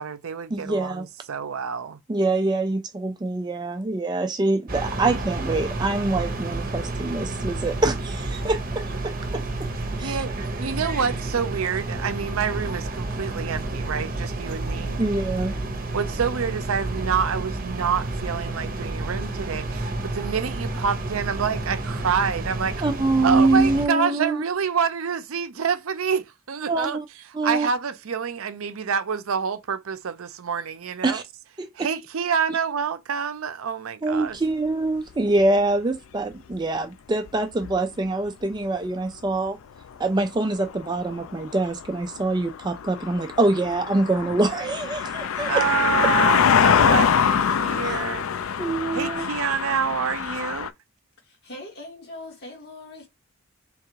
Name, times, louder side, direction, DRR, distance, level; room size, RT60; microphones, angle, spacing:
voice 1, 0.0-2.0 9.9-10.3 10.6-15.0 15.9-22.8 23.2-27.0 27.4-31.2 31.8-34.4 45.4-48.3 48.9-50.7, right 6 dB, 80° right, 0.5 m, -27 dB
voice 2, 0.5-1.0 2.1-9.7 10.0-10.2 15.0-15.5 22.8-24.4 26.7-27.0 27.3-27.7 31.0-31.2 31.6-31.9 32.5-32.6 34.0-39.6 40.0-45.6 47.8-48.0 48.6-49.3, right 2 dB, 20° right, 0.3 m, -25 dB
sound 1, 4.7-23.9, right 2 dB, 40° right, 0.9 m, -30 dB
sound 2, 36.3-36.5 37.3-37.4 37.6-37.8 40.3-40.4 40.5-50.7, left 7 dB, 75° left, 0.4 m, -24 dB
voice 3, 51.2-53.1, left 2 dB, 50° left, 1.6 m, -41 dB
3.5 x 2.5 x 4.6 m
head